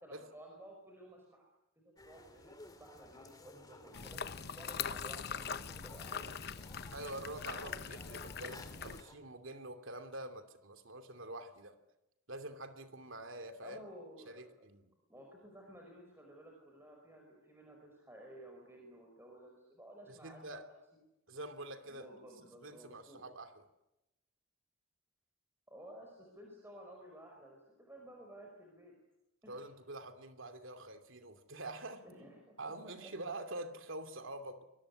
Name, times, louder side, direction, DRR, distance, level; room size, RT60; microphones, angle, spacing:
voice 1, 0.0-1.4 1.7-6.5 8.4-9.1 13.6-14.6 15.1-20.7 21.8-23.2 25.7-28.9 29.4-29.7 32.0-33.1, right 1 dB, 10° right, 1 dB, 5.0 m, -55 dB
sound 1, 2.0-9.1, left 2 dB, 20° left, 2.5 m, -56 dB
sound 2, 3.9-9.0, left 7 dB, 50° left, 1.0 m, -42 dB
voice 2, 6.9-11.8 12.3-13.8 14.3-14.9 20.1-20.7 21.3-22.1 22.6-23.6 29.5-32.1 32.6-34.6, right 2 dB, 70° right, 8 dB, 2.8 m, -46 dB
25.5 x 22.0 x 9.8 m, 0.91 s
head